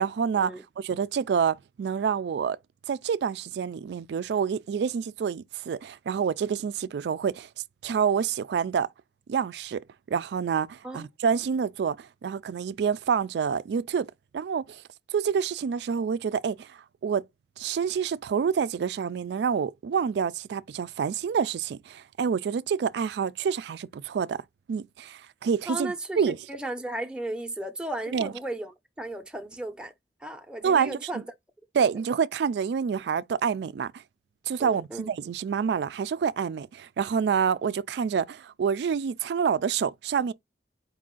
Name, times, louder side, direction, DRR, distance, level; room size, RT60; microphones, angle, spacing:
voice 1, 0.0-2.6 2.9-7.5 7.8-8.9 9.3-14.8 15.1-17.2 17.6-24.4 24.7-26.4 28.1-28.3 30.6-31.1 31.7-33.9 34.5-40.3, right 7 dB, 70° right, 0.3 m, -27 dB
voice 2, 25.7-28.7 29.0-29.9 30.2-31.2 31.8-32.0 34.6-35.1, right 1 dB, 5° right, 0.6 m, -35 dB
4.7 x 2.5 x 3.7 m
head